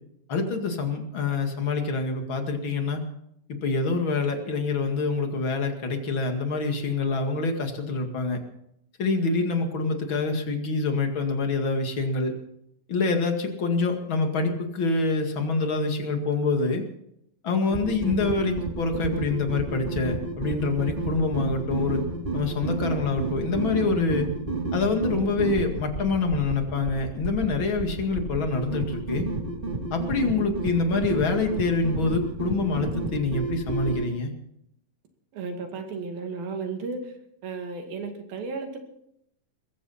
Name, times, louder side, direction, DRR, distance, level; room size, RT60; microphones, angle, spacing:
voice 1, 0.3-3.0 3.5-8.4 9.0-12.3 12.9-16.8 17.4-22.0 22.3-24.3 24.7-29.3 29.9-34.3, left 3 dB, 40° left, 4 dB, 2.6 m, -26 dB
sound 1, 17.7-34.1, right 3 dB, 15° right, 2.1 m, -31 dB
voice 2, 35.3-37.1 37.4-38.8, right 4 dB, 90° right, 4 dB, 4.1 m, -34 dB
21.5 x 15.5 x 4.3 m, 0.75 s
omnidirectional pair, 4.0 m